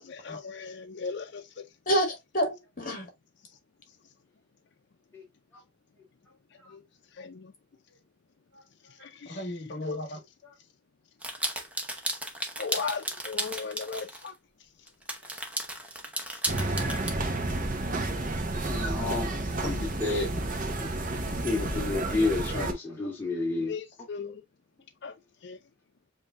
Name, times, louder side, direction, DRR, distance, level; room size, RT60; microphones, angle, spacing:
voice 1, 0.0-1.7 6.7-6.8 7.1-7.5 8.9-9.7 10.1-10.2 12.6-14.3 16.3-16.4 23.7-24.4 25.0-25.2 25.4-25.6, left 5 dB, 60° left, 0.5 m, -38 dB
voice 2, 1.8-3.1 9.3-10.2, equal, 45° left, 1.7 m, -30 dB
sound 1, 11.2-14.3 14.9-17.1, right 1 dB, 5° right, 0.8 m, -34 dB
sound 2, 16.5-22.7, right 2 dB, 45° right, 0.8 m, -31 dB
voice 3, 18.6-19.3 19.6-20.5 20.8-20.9 21.4-23.7, left 3 dB, 10° left, 2.3 m, -30 dB
7.3 x 2.7 x 2.4 m
head